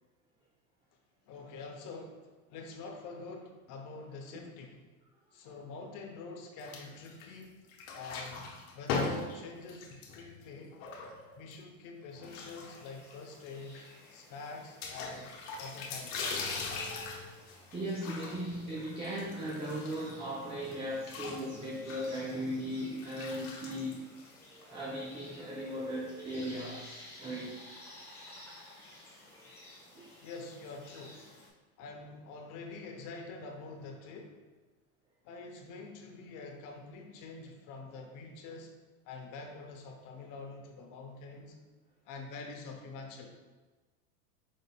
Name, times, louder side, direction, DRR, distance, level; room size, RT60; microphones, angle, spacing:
voice 1, 1.3-4.8 5.3-7.5 7.9-10.8 11.4-13.8 14.1-16.3 30.2-31.3 31.8-34.4 35.2-38.7 39.0-41.6 42.0-43.3, left 3 dB, 45° left, 3 dB, 0.8 m, -46 dB
sound 1, 6.6-7.4 7.7-11.5 12.1-13.1 13.4-13.5 13.7-13.8 14.8-20.3 20.6-24.6, left 4 dB, 65° left, 1.0 m, -40 dB
sound 2, 12.3-31.5, left 1 dB, 5° left, 1.0 m, -54 dB
voice 2, 17.7-24.0 24.7-27.5 29.9-30.1, equal, 15° right, -5 dB, 0.5 m, -37 dB
5.1 x 3.8 x 2.2 m, 1.3 s
hypercardioid pair, 110°, 44 cm